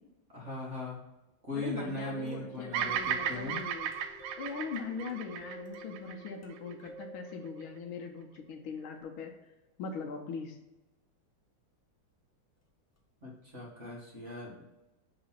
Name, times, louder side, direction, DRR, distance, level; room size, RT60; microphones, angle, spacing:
voice 1, 0.3-1.0 1.4-3.6 13.2-14.6, left 1 dB, 35° right, -4 dB, 1.8 m, -39 dB
voice 2, 1.5-3.9 4.4-9.3 9.8-10.6, left 5 dB, 70° left, 3 dB, 1.5 m, -40 dB
sound 1, 1.8-8.7 13.0-13.1 13.5-13.6, equal, 25° left, 0.3 m, -51 dB
Bird vocalization bird call bird song, 2.7-7.0, right 8 dB, 80° right, 1.4 m, -35 dB
6.1 x 3.9 x 5.7 m, 1.0 s
omnidirectional pair, 2.4 m